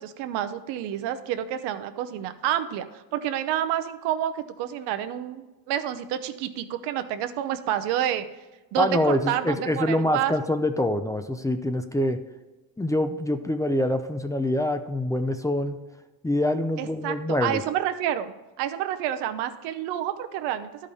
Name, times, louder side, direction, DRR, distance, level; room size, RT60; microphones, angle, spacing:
voice 1, 0.0-8.2 8.7-10.3 16.8-18.3 18.6-20.7, right 11 dB, 85° right, 9 dB, 0.8 m, -29 dB
voice 2, 8.8-12.2 12.8-15.8 16.2-17.6, left 1 dB, 10° left, 8 dB, 0.5 m, -25 dB
12.0 x 5.2 x 4.2 m, 1.2 s
cardioid pair, 110°, 40 cm